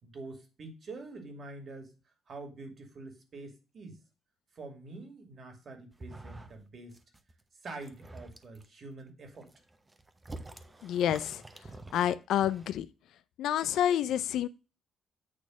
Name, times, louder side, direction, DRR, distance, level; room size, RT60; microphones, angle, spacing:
voice 1, 0.0-1.9 2.3-4.0 4.5-7.0 7.6-9.5, right 3 dB, 50° right, 2.4 m, -46 dB
sound 1, 5.9-6.7 6.9-7.3 7.7-8.7 9.2-12.7, right 2 dB, 20° right, 0.9 m, -47 dB
voice 2, 10.8-11.4 11.9-12.9 13.4-14.5, left 10 dB, 80° left, 0.5 m, -28 dB
8.7 x 3.2 x 6.2 m
cardioid pair, 100°, 0 cm